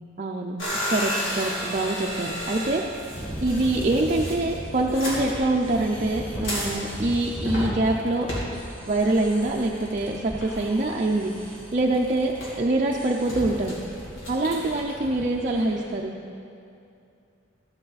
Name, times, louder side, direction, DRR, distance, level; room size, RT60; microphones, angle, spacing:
voice 1, 0.2-0.5 0.9-2.8 3.4-8.3 8.9-12.3 12.6-13.7 14.3-16.2, right 2 dB, 40° right, -1 dB, 0.5 m, -25 dB
sound 1, 0.6-14.8, equal, 70° left, 2.6 m, -34 dB
sound 2, 1.4-16.0, equal, 5° left, 1.5 m, -39 dB
14.0 x 9.2 x 4.1 m, 2.6 s
head